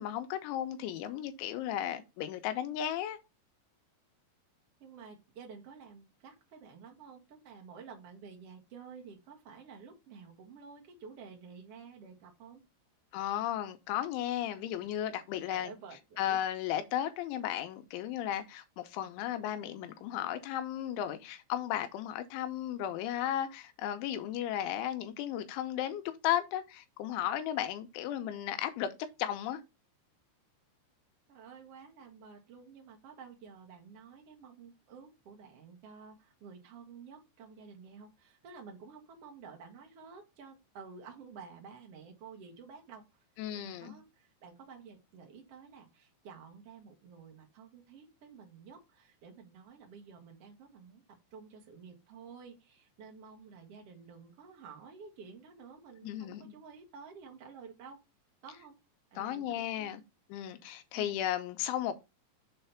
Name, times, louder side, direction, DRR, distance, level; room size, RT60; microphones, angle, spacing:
voice 1, 0.0-3.2 13.1-15.7 16.2-28.9 29.2-29.6 43.4-44.0 56.0-56.5 59.2-60.0 60.3-61.9, left 11 dB, 90° left, 3.2 m, -35 dB
voice 2, 4.8-12.6 15.5-16.4 31.3-43.2 43.5-58.0 58.4-58.8 59.1-59.9 60.9-61.2, right 5 dB, 65° right, 1.4 m, -51 dB
7.5 x 3.3 x 5.7 m
omnidirectional pair, 5.3 m